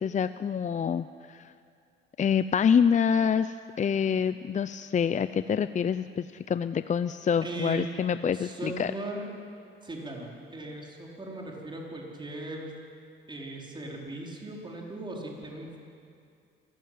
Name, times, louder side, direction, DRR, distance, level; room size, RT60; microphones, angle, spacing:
voice 1, 0.0-1.5 2.2-8.9, left 7 dB, 40° left, 12 dB, 0.6 m, -26 dB
voice 2, 7.4-7.9 8.3-9.3 9.8-12.7 13.3-15.8, right 2 dB, 25° right, -1 dB, 4.8 m, -38 dB
26.0 x 15.0 x 9.5 m, 2.4 s
cardioid pair, 90°, 20 cm